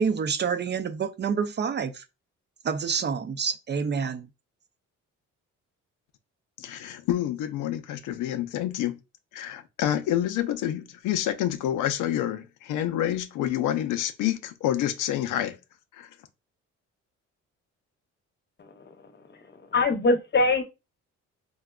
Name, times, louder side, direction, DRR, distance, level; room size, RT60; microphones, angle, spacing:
voice 1, 0.0-2.0 2.6-4.3, right 6 dB, 35° right, 0.5 m, -27 dB
voice 2, 6.6-9.0 9.3-15.6 16.0-16.1, left 12 dB, 90° left, 0.5 m, -28 dB
voice 3, 19.7-20.6, left 3 dB, 35° left, 0.8 m, -23 dB
4.8 x 2.2 x 2.3 m
cardioid pair, 90°, 30 cm